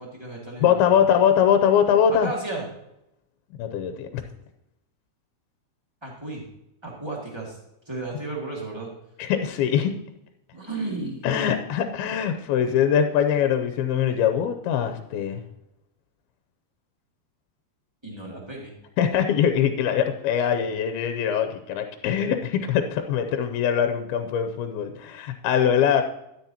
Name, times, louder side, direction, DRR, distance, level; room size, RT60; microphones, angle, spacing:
voice 1, 0.0-1.0 2.1-2.6 6.0-6.5 6.8-7.6 7.8-8.9 10.5-11.2 18.0-18.7 20.5-20.7, right 2 dB, 20° right, -2 dB, 0.8 m, -34 dB
voice 2, 0.6-2.3 3.6-4.2 9.2-10.0 11.2-15.4 19.0-26.0, left 8 dB, 80° left, 7 dB, 2.6 m, -22 dB
13.0 x 9.7 x 2.9 m, 0.84 s
omnidirectional pair, 4.5 m